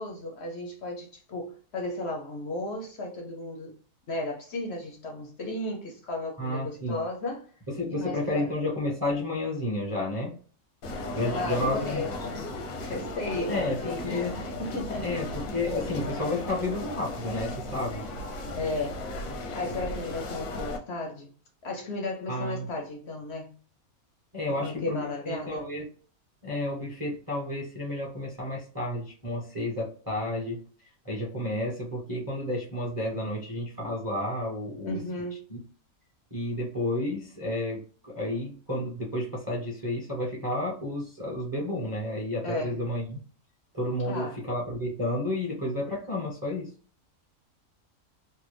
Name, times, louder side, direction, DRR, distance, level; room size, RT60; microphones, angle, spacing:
voice 1, 0.0-3.7 4.1-7.5 7.9-8.5 11.3-12.5 12.8-15.2 18.6-19.0 19.5-21.3 21.6-23.5 24.5-25.6 34.9-35.4 42.4-42.8 44.0-44.4, left 2 dB, 60° left, 0.8 m, -34 dB
voice 2, 6.4-7.0 7.8-10.3 11.1-12.0 13.5-14.3 15.0-18.0 22.3-22.6 24.3-25.9 26.4-30.6 31.0-35.0 35.5-35.6 36.3-43.2 43.7-46.7, left 1 dB, 15° right, 0.8 m, -31 dB
sound 1, 10.8-20.8, left 2 dB, 85° left, 1.3 m, -36 dB
3.3 x 2.2 x 3.2 m
omnidirectional pair, 1.6 m